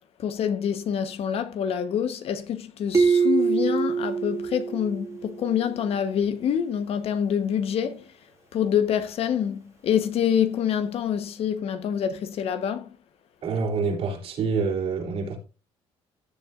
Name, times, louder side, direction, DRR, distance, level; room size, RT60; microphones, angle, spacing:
voice 1, 0.2-8.0 8.5-13.0, left 8 dB, 60° left, 1.2 m, -26 dB
sound 1, 2.9-5.5, right 5 dB, 25° right, 2.1 m, -24 dB
voice 2, 13.4-15.4, right 4 dB, 60° right, 3.6 m, -27 dB
15.5 x 7.2 x 2.6 m
cardioid pair, 100°, 11 cm